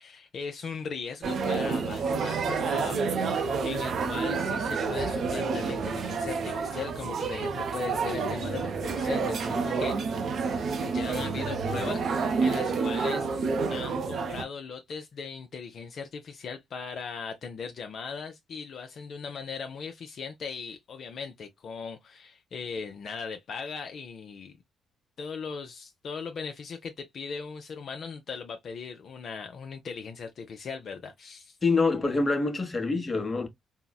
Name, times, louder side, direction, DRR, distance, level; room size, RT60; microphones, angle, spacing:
voice 1, 0.0-10.0 10.8-13.3 13.7-24.5 25.2-31.6, left 5 dB, 55° left, 0.4 m, -38 dB
sound 1, 1.2-14.4, right 4 dB, 60° right, 0.5 m, -29 dB
voice 2, 31.6-33.5, left 3 dB, 25° left, 0.8 m, -25 dB
3.8 x 2.0 x 2.2 m
cardioid pair, 90°, 0 cm